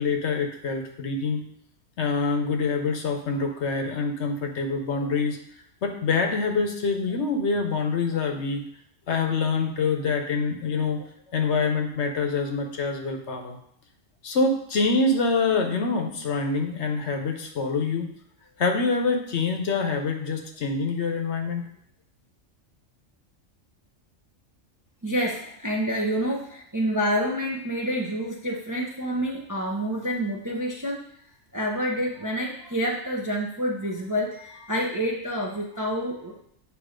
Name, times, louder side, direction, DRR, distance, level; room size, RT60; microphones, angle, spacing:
voice 1, 0.0-1.4 2.0-5.4 5.8-8.6 9.1-11.0 11.3-13.6 14.2-18.1 18.6-21.7, left 4 dB, 65° left, 4 dB, 1.0 m, -25 dB
voice 2, 25.0-31.0 31.5-36.4, equal, 20° right, -1 dB, 0.5 m, -28 dB
8.4 x 2.8 x 5.0 m, 0.68 s
omnidirectional pair, 1.4 m